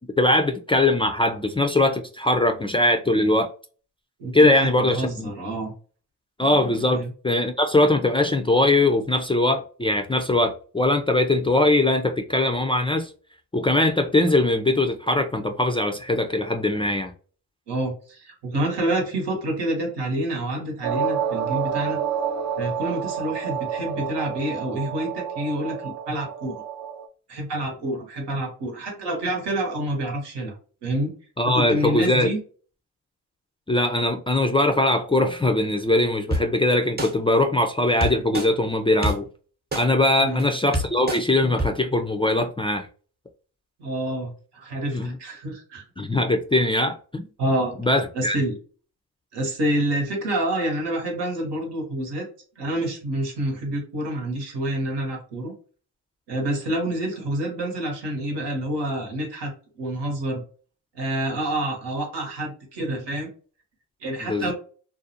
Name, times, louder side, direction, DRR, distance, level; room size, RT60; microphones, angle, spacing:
voice 1, 0.2-3.5 4.3-5.3 6.4-13.1 13.5-17.1 31.4-32.3 33.7-39.3 39.7-42.9 44.9-45.1 46.0-47.3 47.8-48.4 64.2-64.5, left 2 dB, 15° left, 0.3 m, -21 dB
voice 2, 4.2-5.7 6.9-7.1 17.7-22.0 22.6-26.6 27.3-30.6 30.8-31.1 31.4-32.4 40.2-40.4 43.8-45.8 47.4-47.8 48.1-48.6 49.3-52.3 52.6-55.5 56.3-60.4 60.9-63.3 64.0-64.5, right 1 dB, 75° right, 1.1 m, -28 dB
sound 1, 20.8-27.1, right 7 dB, 45° right, 0.5 m, -29 dB
sound 2, 36.3-36.4 37.0-37.1 38.0-38.5 39.0-39.1 39.7-39.8 40.4-40.5 40.7-41.2 41.6-41.7, right 1 dB, 25° right, 0.8 m, -24 dB
2.5 x 2.0 x 2.7 m
supercardioid pair, 50°, 41 cm